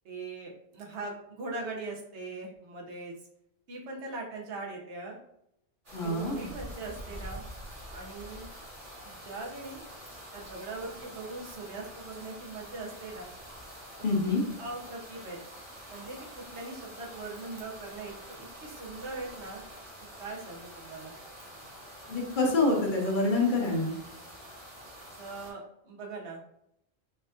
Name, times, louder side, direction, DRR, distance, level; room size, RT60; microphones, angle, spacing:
voice 1, 0.0-3.1 3.7-5.2 6.0-7.4 7.9-8.5 9.0-9.8 10.3-13.3 14.3-15.4 15.9-18.1 18.4-19.6 20.2-21.1 25.2-26.5, right 3 dB, 90° right, -1 dB, 1.1 m, -41 dB
sound 1, 5.8-25.5, equal, 50° right, 1.6 m, -46 dB
voice 2, 5.9-6.5 14.0-14.4 22.1-23.9, left 2 dB, 50° left, 0 dB, 0.9 m, -26 dB
4.4 x 2.6 x 2.4 m, 0.76 s
omnidirectional pair, 1.1 m